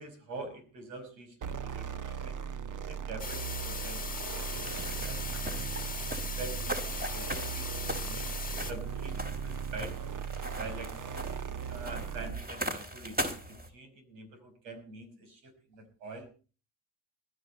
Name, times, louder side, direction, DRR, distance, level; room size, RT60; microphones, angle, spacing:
voice 1, 0.0-2.4 2.8-4.1 4.5-4.7 5.1-5.7 6.0-8.3 8.7-10.2 10.6-10.9 11.7-16.3, right 3 dB, 85° right, 8 dB, 5.5 m, -45 dB
sound 1, 1.4-12.5, right 7 dB, 40° right, 1.3 m, -38 dB
sound 2, 3.2-8.7, left 5 dB, 15° left, 1.7 m, -39 dB
sound 3, 4.4-13.7, equal, 20° right, 4.8 m, -40 dB
20.5 x 13.5 x 4.3 m, 0.37 s
hypercardioid pair, 65°, 49 cm